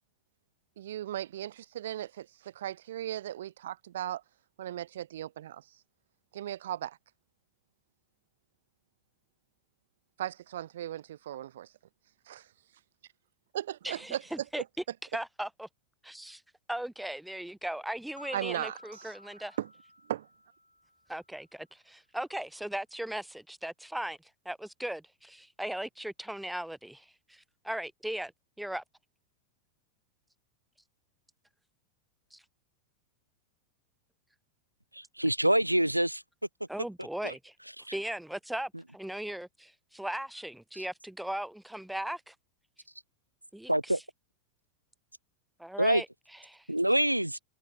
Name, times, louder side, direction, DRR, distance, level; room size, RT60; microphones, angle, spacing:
voice 1, 0.8-4.2 4.6-5.6 6.3-7.0 10.2-11.7 12.3-12.4 13.5-14.2 14.6-14.7 18.3-19.1 19.6-19.7 20.1-20.3, right 12 dB, 60° right, 1.8 m, -37 dB
voice 2, 13.8-14.6 15.1-15.7 16.0-16.4 16.7-19.6 21.1-24.2 24.4-28.3 28.6-28.8 32.3-32.4 36.7-37.5 37.9-42.3 43.5-44.0 45.6-46.1 46.3-46.7, right 1 dB, ahead, 4.6 m, -38 dB
sound 1, 18.2-21.3, left 1 dB, 90° left, 6.2 m, -53 dB
voice 3, 35.0-36.2 37.2-37.3 43.7-44.0 45.8-46.0 46.7-47.4, right 1 dB, 90° right, 0.7 m, -26 dB
figure-of-eight pair, 90°, 0 cm